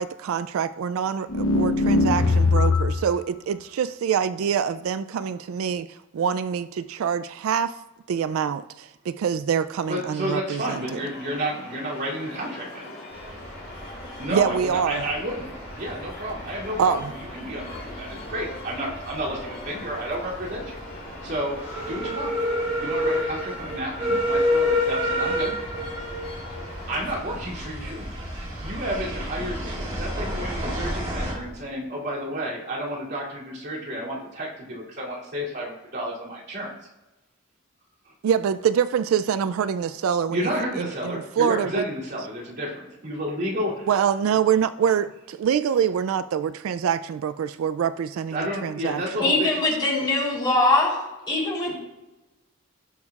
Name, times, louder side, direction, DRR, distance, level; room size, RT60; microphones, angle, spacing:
voice 1, 0.0-7.7 8.1-11.0 14.3-15.0 16.8-17.1 38.2-40.5 40.7-41.8 43.9-49.0, right 7 dB, 75° right, 13 dB, 0.3 m, -25 dB
sound 1, 1.3-3.1, left 3 dB, 85° left, 0.9 m, -20 dB
voice 2, 9.9-12.9 14.2-17.0 17.3-20.8 21.2-22.3 22.8-25.6 26.9-28.1 28.6-36.7 38.0-38.1 40.3-43.9 48.3-49.6 50.0-50.1, equal, 50° right, -6 dB, 2.8 m, -31 dB
sound 2, 10.6-27.2, left 2 dB, 45° left, 3.0 m, -42 dB
sound 3, 13.1-31.3, left 1 dB, 35° right, 3.3 m, -30 dB
voice 3, 49.2-51.0 51.3-51.8, left 2 dB, 20° left, -5 dB, 3.4 m, -22 dB
17.5 x 6.3 x 2.4 m, 1.0 s
head